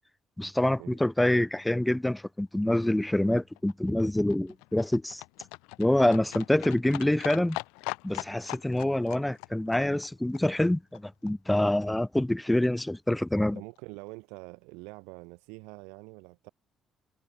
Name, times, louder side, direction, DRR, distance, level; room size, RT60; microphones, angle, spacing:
voice 1, 0.4-5.2 5.8-7.6 8.0-13.6, left 1 dB, 10° left, 2.5 m, -26 dB
Livestock farm animals working animals, 3.1-11.3 11.6-11.7 11.9-12.0 12.2-12.3 12.5-12.6 12.8-12.9 13.1-13.2 13.4-13.5 13.8-13.9, left 30 dB, 85° left, 6.9 m, -42 dB
voice 2, 13.5-16.5, right 29 dB, 85° right, 6.8 m, -45 dB
hypercardioid pair, 55°, 0 cm